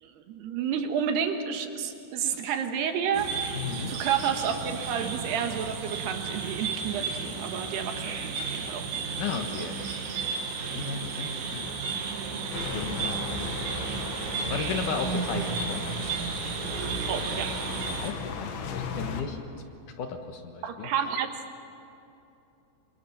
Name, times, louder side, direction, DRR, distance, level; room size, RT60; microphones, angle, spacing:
voice 1, 0.0-3.3 3.7-8.9 17.1-17.5 20.6-21.3, right 8 dB, 70° right, 6 dB, 3.2 m, -30 dB
sound 1, 3.1-18.1, right 5 dB, 90° right, 4.6 m, -33 dB
voice 2, 3.5-3.9 9.2-9.8 10.7-12.0 12.7-13.7 14.5-15.8 18.0-19.5 20.0-20.9, left 6 dB, 60° left, 5 dB, 2.3 m, -35 dB
sound 2, 12.5-19.2, left 5 dB, 80° left, 4.1 m, -37 dB
28.0 x 25.5 x 6.0 m, 2.8 s
omnidirectional pair, 5.2 m